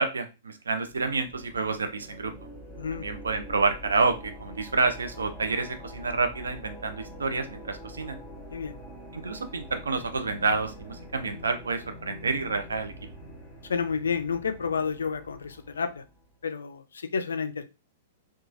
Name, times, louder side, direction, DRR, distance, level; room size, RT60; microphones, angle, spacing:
voice 1, 0.0-2.3 2.9-8.2 9.1-12.9, right 4 dB, 70° right, 8 dB, 0.4 m, -28 dB
sound 1, 0.9-16.2, equal, 15° left, 1.0 m, -45 dB
voice 2, 13.7-16.0 16.4-17.6, left 5 dB, 70° left, 9 dB, 0.3 m, -30 dB
3.0 x 2.3 x 2.4 m, 0.28 s
figure-of-eight pair, 105°, 0 cm